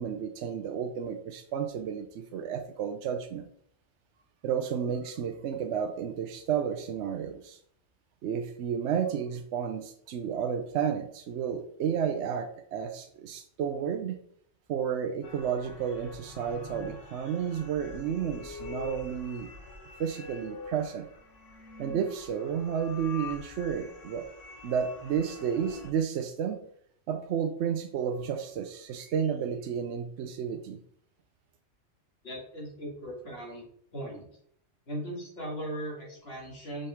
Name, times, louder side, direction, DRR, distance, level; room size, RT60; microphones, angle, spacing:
voice 1, 0.0-3.4 4.4-7.6 8.2-14.2 14.7-19.5 20.0-21.1 21.8-24.3 24.6-26.6 27.1-30.8, right 8 dB, 70° right, 6 dB, 0.9 m, -32 dB
sound 1, 15.2-25.9, left 4 dB, 85° left, 1.3 m, -45 dB
voice 2, 32.2-33.7 33.9-34.3 34.9-36.9, right 1 dB, 55° left, -2 dB, 2.4 m, -38 dB
5.4 x 5.4 x 3.4 m, 0.65 s
omnidirectional pair, 1.3 m